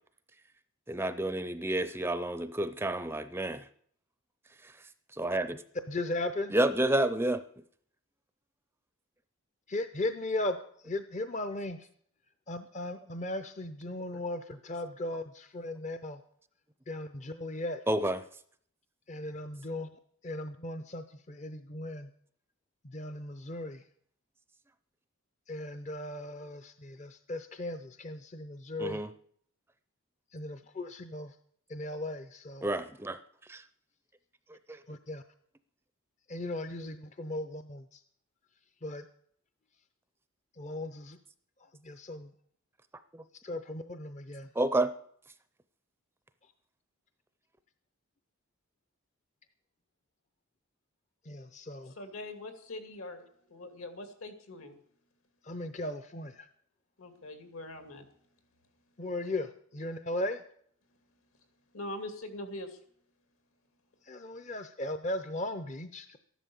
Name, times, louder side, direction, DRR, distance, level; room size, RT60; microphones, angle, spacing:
voice 1, 0.9-3.6 4.6-4.7 5.2-5.6 6.5-7.4 17.9-18.2 28.8-29.1 32.6-33.2 33.5-33.6 34.7-34.8 43.1-43.2 44.6-44.9, right 1 dB, 10° right, 12 dB, 0.5 m, -29 dB
voice 2, 5.9-6.5 9.7-11.9 12.5-16.2 16.9-17.8 19.1-19.9 20.2-22.1 22.8-23.8 25.5-29.0 30.3-31.4 31.7-32.7 34.9-35.2 36.3-38.0 38.8-39.1 40.5-41.2 41.6-42.3 43.4-44.5 51.2-51.9 55.4-56.5 59.0-60.4 64.0-66.2, left 1 dB, 35° left, 10 dB, 0.6 m, -37 dB
voice 3, 51.9-54.7 57.0-58.1 61.7-62.8, left 1 dB, 75° left, 7 dB, 2.5 m, -43 dB
14.0 x 11.0 x 7.0 m, 0.62 s
head